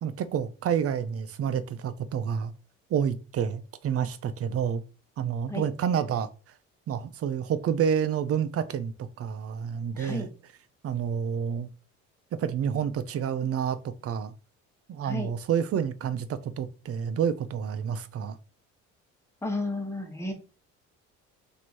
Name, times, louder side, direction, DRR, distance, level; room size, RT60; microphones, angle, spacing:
voice 1, 0.0-2.5 2.9-4.8 5.2-6.3 6.9-10.3 10.8-11.7 12.3-14.3 14.9-18.4, right 8 dB, 45° right, 0.5 m, -29 dB
voice 2, 9.9-10.3 15.0-15.3 19.4-20.3, left 2 dB, 10° left, 1.2 m, -32 dB
3.0 x 2.7 x 4.4 m
supercardioid pair, 75°, 33 cm